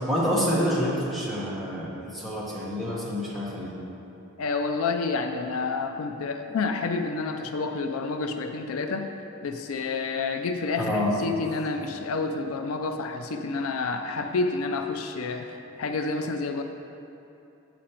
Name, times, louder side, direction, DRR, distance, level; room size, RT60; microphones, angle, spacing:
voice 1, 0.0-3.7 10.8-11.1, equal, ahead, -8 dB, 1.1 m, -27 dB
voice 2, 4.4-9.1 9.4-16.6, left 4 dB, 80° left, 6 dB, 0.4 m, -29 dB
7.5 x 5.1 x 4.4 m, 2.8 s
head